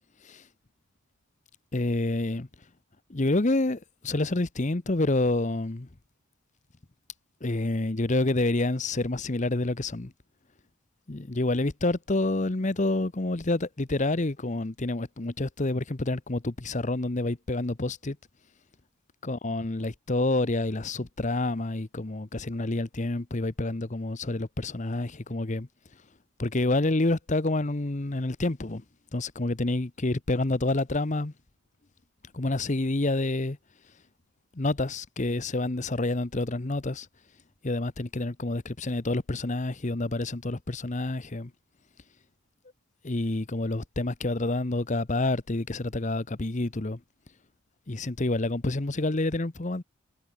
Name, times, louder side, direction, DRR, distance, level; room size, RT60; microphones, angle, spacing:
voice 1, 1.7-2.5 3.1-5.9 7.4-10.1 11.1-18.2 19.2-25.7 26.4-28.8 29.1-31.3 32.3-33.6 34.5-37.1 37.6-41.5 43.0-47.0 47.9-49.8, left 2 dB, 35° left, 0.9 m, -28 dB
head